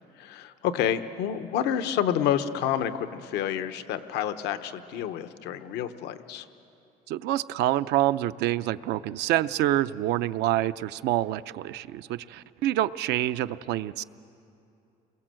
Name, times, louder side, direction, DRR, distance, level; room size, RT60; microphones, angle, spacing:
voice 1, 0.2-6.4, left 9 dB, 85° left, 10 dB, 1.0 m, -29 dB
voice 2, 7.1-14.0, right 14 dB, 85° right, 13 dB, 0.6 m, -27 dB
29.0 x 22.0 x 7.6 m, 2.7 s
cardioid pair, 110°, 17 cm